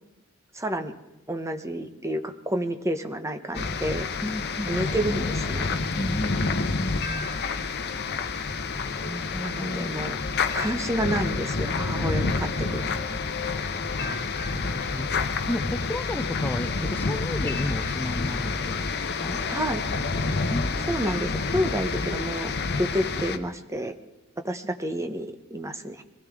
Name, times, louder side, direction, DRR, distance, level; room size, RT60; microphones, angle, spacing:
voice 1, 0.5-0.9 1.3-4.1 4.7-5.8 9.4-10.2 10.5-13.2 19.5-19.8 20.9-22.5 22.8-23.9 24.4-26.0, equal, 15° right, 7 dB, 0.9 m, -29 dB
sound 1, 3.5-23.4, left 4 dB, 50° left, 0.9 m, -28 dB
voice 2, 4.2-4.7 6.0-7.3 8.7-9.9 13.5-13.6 14.0-19.4 20.5-21.2, left 1 dB, 10° left, 7 dB, 0.4 m, -34 dB
23.0 x 16.0 x 3.6 m, 1.0 s
head